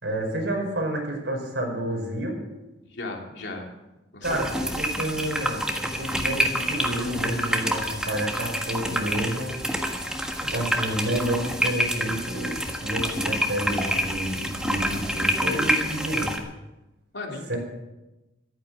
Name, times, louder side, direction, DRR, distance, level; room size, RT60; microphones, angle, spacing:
voice 1, 0.0-2.4 4.2-9.6 10.4-16.3 17.5-17.6, right 1 dB, 90° right, 1 dB, 5.1 m, -29 dB
voice 2, 2.8-3.7 4.1-4.7 17.1-17.6, left 2 dB, 70° left, 1 dB, 3.0 m, -36 dB
sound 1, 4.2-16.4, equal, 5° right, 1.5 m, -27 dB
14.5 x 13.0 x 6.2 m, 0.99 s
head